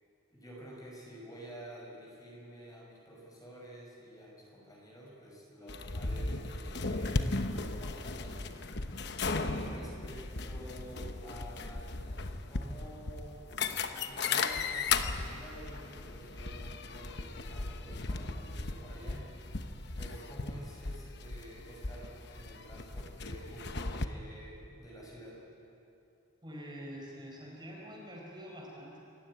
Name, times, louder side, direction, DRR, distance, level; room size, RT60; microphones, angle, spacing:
voice 1, 0.3-8.6 8.9-13.4 13.9-19.3 20.0-25.4, right 1 dB, 20° left, -3 dB, 5.4 m, -50 dB
sound 1, 5.7-24.1, left 3 dB, 55° left, 1.0 m, -36 dB
voice 2, 26.4-29.0, equal, 20° right, -3 dB, 5.1 m, -46 dB
27.0 x 15.0 x 9.7 m, 2.8 s
head